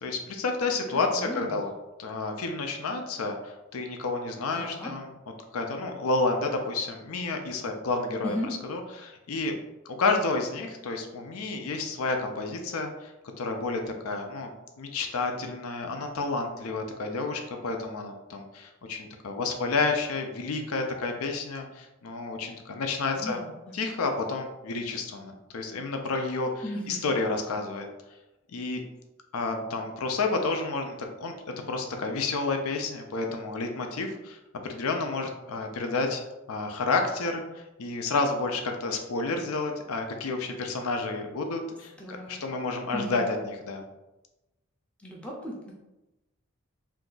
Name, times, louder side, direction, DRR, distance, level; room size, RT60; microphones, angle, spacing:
voice 1, 0.0-1.7 2.0-5.1 5.5-8.4 8.6-9.5 10.0-13.1 13.4-14.5 14.8-23.4 23.7-27.9 28.5-28.8 29.3-36.2 36.5-43.8, left 3 dB, 80° left, 4 dB, 0.5 m, -30 dB
voice 2, 0.9-1.5 4.5-4.9 8.2-8.5 23.1-23.5 26.6-27.1 42.0-42.4 42.9-43.3 45.0-45.7, left 1 dB, 5° left, -3 dB, 0.5 m, -36 dB
2.7 x 2.3 x 3.8 m, 0.99 s
head